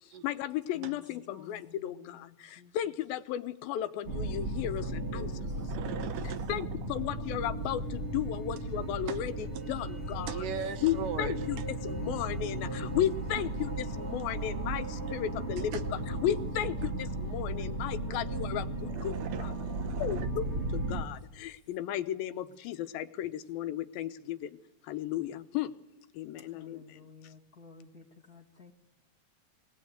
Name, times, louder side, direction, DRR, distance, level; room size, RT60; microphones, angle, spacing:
voice 1, 0.2-5.7 6.5-10.4 10.8-11.6 11.8-15.8 16.2-19.5 20.0-20.5 20.7-24.6 24.8-25.7 26.1-27.0, left 11 dB, 90° left, 10 dB, 2.7 m, -34 dB
voice 2, 1.3-2.2 2.6-2.7 5.1-5.5 5.8-6.1 10.1-10.4 26.5-28.7, left 5 dB, 40° left, 1 dB, 1.3 m, -52 dB
sound 1, 4.0-21.0, right 1 dB, 35° right, 1.0 m, -35 dB
voice 3, 5.5-6.7 9.1-9.2 9.5-9.6 10.3-11.5 13.4-13.5 15.6-15.8 18.2-18.3 18.6-20.3, right 8 dB, 75° right, 9 dB, 2.4 m, -40 dB
20.5 x 18.5 x 8.0 m, 0.92 s
omnidirectional pair, 4.1 m